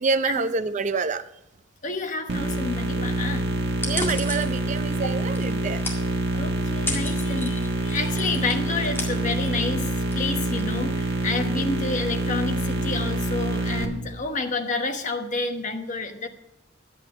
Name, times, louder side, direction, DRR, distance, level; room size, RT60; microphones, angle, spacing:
voice 1, 0.0-1.2 3.8-5.8 11.5-11.6, right 4 dB, 40° right, 12 dB, 0.5 m, -27 dB
voice 2, 1.8-3.5 5.0-5.1 6.3-16.3, left 3 dB, 40° left, 5 dB, 1.1 m, -29 dB
sound 1, 2.3-13.8, right 1 dB, 55° right, 1.5 m, -26 dB
sound 2, 3.8-11.5, left 2 dB, 10° left, 2.0 m, -37 dB
11.0 x 8.4 x 5.0 m, 0.84 s
head